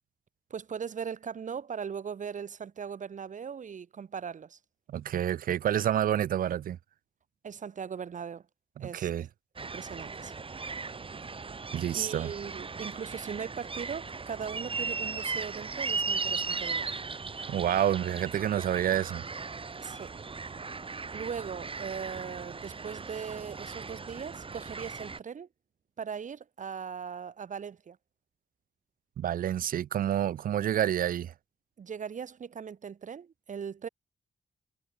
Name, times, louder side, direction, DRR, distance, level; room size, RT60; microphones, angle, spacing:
voice 1, 0.5-4.6 7.4-8.4 8.8-9.1 9.7-10.4 11.9-16.9 19.8-20.1 20.5-20.6 21.1-25.5 26.0-28.0 31.8-33.9, right 7 dB, 60° right, 4.6 m, -39 dB
voice 2, 4.9-6.8 8.8-9.3 11.7-12.3 17.4-19.2 29.2-31.3, right 10 dB, 75° right, 1.0 m, -28 dB
sound 1, 9.6-25.2, right 4 dB, 40° right, 2.8 m, -37 dB
cardioid pair, 60°, 15 cm